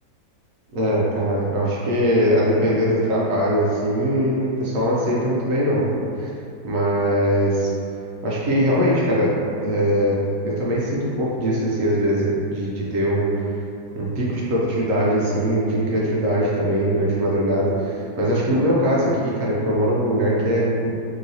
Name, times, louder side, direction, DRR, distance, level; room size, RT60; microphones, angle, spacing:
voice 1, 0.7-5.9 6.2-6.3 6.6-7.7 8.2-9.3 9.6-10.2 10.4-13.6 13.9-20.9, equal, 65° right, -5 dB, 0.8 m, -21 dB
3.0 x 2.9 x 2.6 m, 2.6 s
omnidirectional pair, 1.9 m